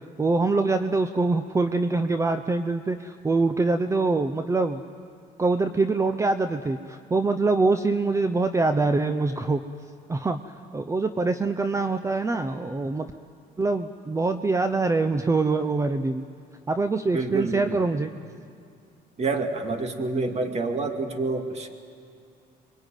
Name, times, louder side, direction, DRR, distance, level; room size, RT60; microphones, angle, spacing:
voice 1, 0.2-4.8 5.4-9.6 10.1-13.1 13.6-16.2 16.7-18.1, right 3 dB, 15° right, 9 dB, 0.8 m, -24 dB
voice 2, 17.1-17.8 19.2-21.7, right 3 dB, 40° right, 5 dB, 2.5 m, -28 dB
26.0 x 22.5 x 9.2 m, 2.4 s
cardioid pair, 110°, 17 cm